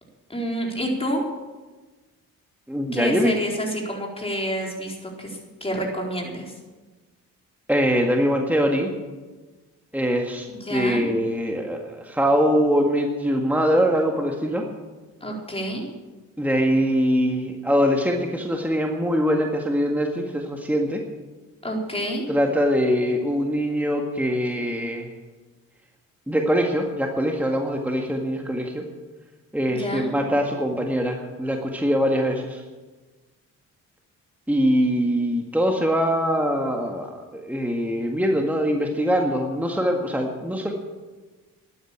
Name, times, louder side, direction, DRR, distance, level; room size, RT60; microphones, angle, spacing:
voice 1, 0.3-1.2 2.9-6.5 10.5-11.0 15.2-15.9 21.6-22.2 29.7-30.2, equal, 15° left, -1 dB, 4.3 m, -28 dB
voice 2, 2.7-3.3 7.7-8.9 9.9-14.6 16.4-21.0 22.3-25.1 26.3-28.8 29.5-32.6 34.5-40.7, equal, 5° right, 1 dB, 1.8 m, -23 dB
12.5 x 9.5 x 8.8 m, 1.3 s
cardioid pair, 70°, 35 cm